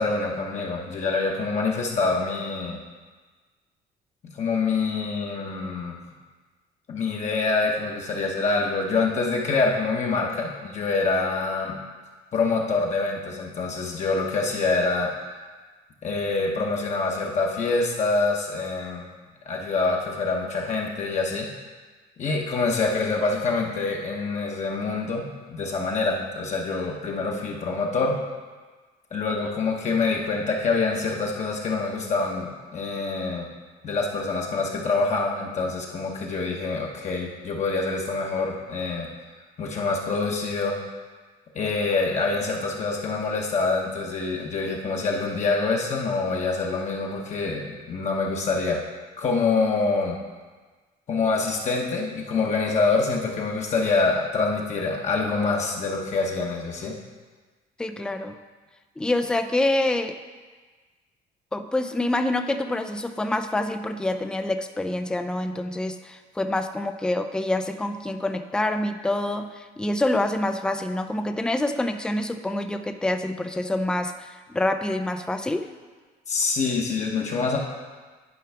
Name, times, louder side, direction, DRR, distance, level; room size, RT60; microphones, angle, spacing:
voice 1, 0.0-2.8 4.2-6.0 6.9-11.8 12.3-15.1 16.0-19.1 19.5-21.5 22.2-28.2 29.1-33.5 33.8-39.1 39.6-40.7 41.5-48.8 49.2-50.2 51.1-57.0 76.3-77.6, left 3 dB, 45° left, -1 dB, 1.0 m, -26 dB
voice 2, 57.8-58.4 59.0-60.2 61.5-75.7, left 1 dB, 5° left, 7 dB, 0.4 m, -26 dB
10.5 x 4.7 x 3.4 m, 1.4 s
cardioid pair, 110°, 17 cm